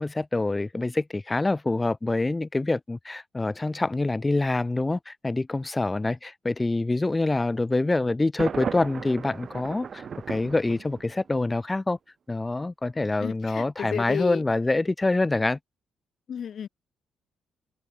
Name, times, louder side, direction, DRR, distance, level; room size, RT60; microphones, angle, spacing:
voice 1, 0.0-12.0 12.3-15.6, left 2 dB, 20° left, 0.7 m, -26 dB
Thunder, 8.4-11.4, right 7 dB, 50° right, 2.1 m, -36 dB
voice 2, 13.2-14.4 16.3-16.7, left 8 dB, 60° left, 1.7 m, -32 dB
open air
supercardioid pair, 70°, 0 cm